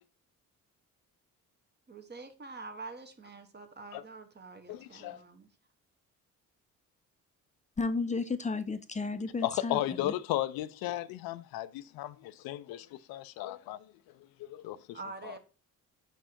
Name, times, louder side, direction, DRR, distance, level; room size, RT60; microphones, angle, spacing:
voice 1, 1.9-5.5 14.9-15.4, right 3 dB, 30° right, 1.1 m, -46 dB
voice 2, 4.7-5.2 9.4-13.8 14.4-15.0 15.2-15.3, left 14 dB, 85° left, 0.5 m, -35 dB
voice 3, 7.8-10.1, left 3 dB, 20° left, 0.6 m, -33 dB
4.9 x 4.6 x 4.3 m
cardioid pair, 75°, 35 cm